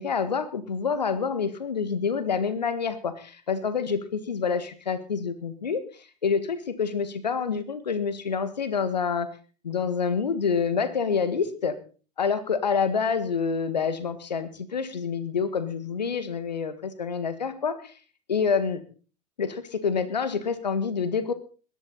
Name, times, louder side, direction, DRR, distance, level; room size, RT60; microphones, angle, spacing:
voice 1, 0.0-5.8 6.2-9.3 9.6-11.8 12.2-17.9 18.3-18.8 19.4-21.3, left 6 dB, 80° left, 12 dB, 1.8 m, -27 dB
20.5 x 11.0 x 4.2 m, 0.38 s
figure-of-eight pair, 80°, 21 cm